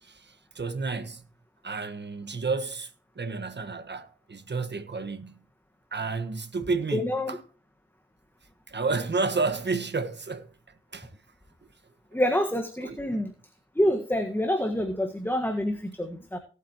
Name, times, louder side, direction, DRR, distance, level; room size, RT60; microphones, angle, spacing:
voice 1, 0.0-1.3 1.6-5.5 5.9-7.4 8.7-11.2 12.8-13.2, right 4 dB, 55° right, 1.5 m, -31 dB
voice 2, 6.9-7.4 12.1-13.3 13.7-16.4, left 1 dB, 10° left, 1.6 m, -27 dB
18.0 x 8.6 x 3.0 m
wide cardioid pair, 65°, 21 cm